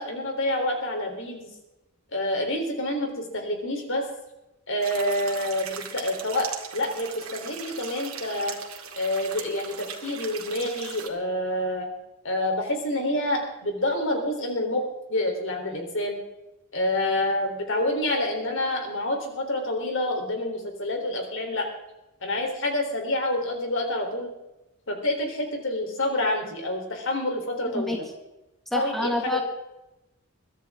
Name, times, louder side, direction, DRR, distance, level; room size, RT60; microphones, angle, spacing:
voice 1, 0.0-1.5 2.1-4.0 4.7-6.5 6.7-8.6 9.0-11.9 12.2-16.2 16.7-21.7 22.2-24.3 24.9-28.1 28.7-29.4, left 1 dB, 60° left, 3 dB, 3.6 m, -27 dB
sound 1, 4.8-11.1, right 7 dB, 80° right, 2.4 m, -39 dB
voice 2, 28.7-29.4, left 1 dB, ahead, 1 dB, 2.0 m, -27 dB
22.5 x 13.0 x 3.7 m, 0.96 s
head